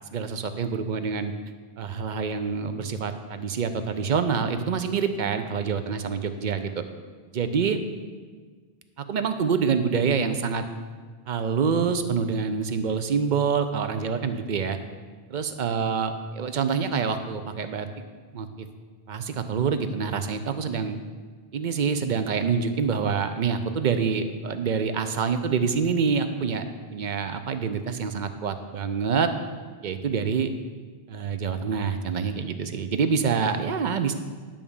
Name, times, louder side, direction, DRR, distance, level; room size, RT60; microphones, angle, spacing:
voice 1, 0.1-1.3 1.8-6.8 7.3-7.8 9.0-10.6 11.3-14.8 15.3-17.9 18.3-18.5 19.1-21.0 21.5-26.6 26.9-29.3 29.8-30.5 31.1-34.1, right 6 dB, 55° right, 9 dB, 0.7 m, -26 dB
10.5 x 3.6 x 7.0 m, 1.5 s
omnidirectional pair, 1.0 m